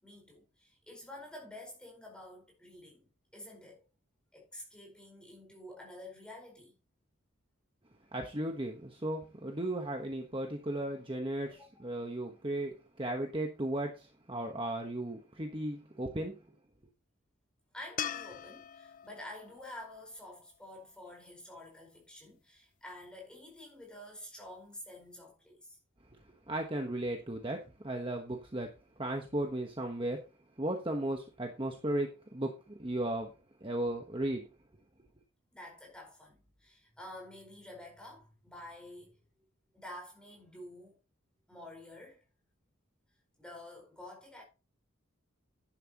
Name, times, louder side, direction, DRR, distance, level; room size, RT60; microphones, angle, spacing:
voice 1, 0.0-3.1 3.3-3.9 4.3-6.7 11.6-11.9 17.7-25.8 35.5-39.2 39.7-41.0 41.5-42.2 43.4-44.4, left 1 dB, 5° left, 4.6 m, -49 dB
voice 2, 8.1-16.3 26.5-28.7 29.0-30.2 30.6-33.3 33.6-34.4, right 1 dB, 25° right, 1.1 m, -35 dB
sound 1, 18.0-21.2 24.5-24.6, left 9 dB, 40° left, 0.5 m, -43 dB
11.0 x 10.0 x 3.0 m
head